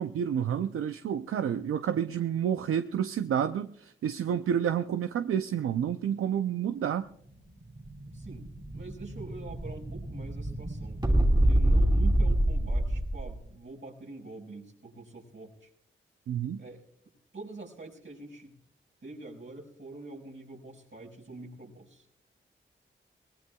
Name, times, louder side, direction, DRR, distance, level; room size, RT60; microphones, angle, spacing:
voice 1, 0.0-7.1 16.3-16.6, right 9 dB, 90° right, 9 dB, 0.5 m, -29 dB
Explosion, 7.3-13.4, right 1 dB, 20° right, 2.9 m, -27 dB
voice 2, 8.1-8.4 8.7-15.7 16.6-16.8 17.3-18.6 19.0-22.1, right 3 dB, 65° right, -1 dB, 5.6 m, -45 dB
23.0 x 19.5 x 2.3 m, 0.70 s
cardioid pair, 45°, 21 cm